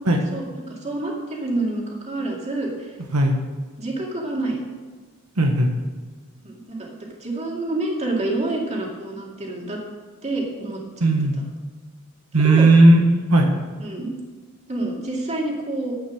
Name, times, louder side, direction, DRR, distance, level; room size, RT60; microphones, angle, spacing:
voice 1, 0.3-2.9 3.8-4.6 6.4-9.8 10.2-11.1 12.4-12.7 13.8-14.1 14.7-16.0, right 2 dB, 30° right, -1 dB, 2.3 m, -28 dB
voice 2, 5.4-5.7 11.0-11.4 12.3-13.5, right 2 dB, 90° right, 3 dB, 1.3 m, -15 dB
10.5 x 8.4 x 6.2 m, 1.4 s
head